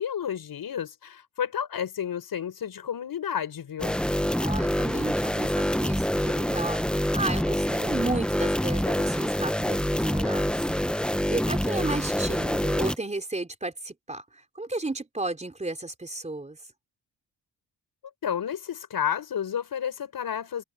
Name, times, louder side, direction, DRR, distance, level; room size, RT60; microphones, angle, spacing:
voice 1, 0.0-4.0 18.2-20.6, left 8 dB, 60° left, 5.9 m, -31 dB
sound 1, 3.8-13.0, left 1 dB, ahead, 0.7 m, -26 dB
voice 2, 4.3-6.8 7.1-10.7 11.3-16.6, right 2 dB, 15° right, 3.9 m, -33 dB
cardioid pair, 100°, 41 cm